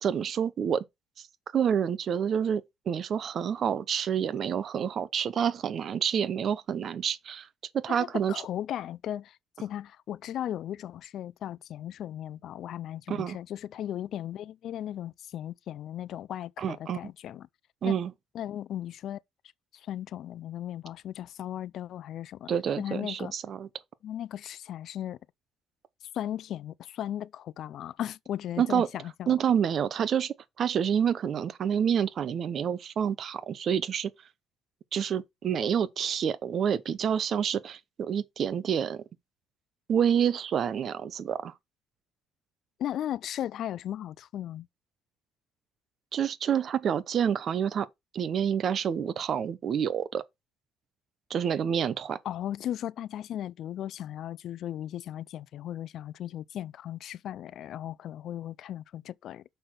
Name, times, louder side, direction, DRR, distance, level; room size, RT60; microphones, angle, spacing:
voice 1, 0.0-0.8 1.2-1.3 1.5-7.5 7.7-8.4 13.1-13.4 16.6-17.0 17.8-18.1 22.5-23.7 28.6-28.9 29.3-34.1 34.9-39.0 39.9-41.5 46.1-47.9 48.1-50.2 51.3-52.2, right 8 dB, 50° right, 0.8 m, -28 dB
voice 2, 7.9-17.5 17.8-17.9 18.3-19.2 19.8-23.3 24.0-25.2 26.1-29.4 42.8-44.7 52.2-59.4, left 11 dB, 65° left, 0.4 m, -36 dB
6.7 x 5.8 x 4.5 m
cardioid pair, 95°, 0 cm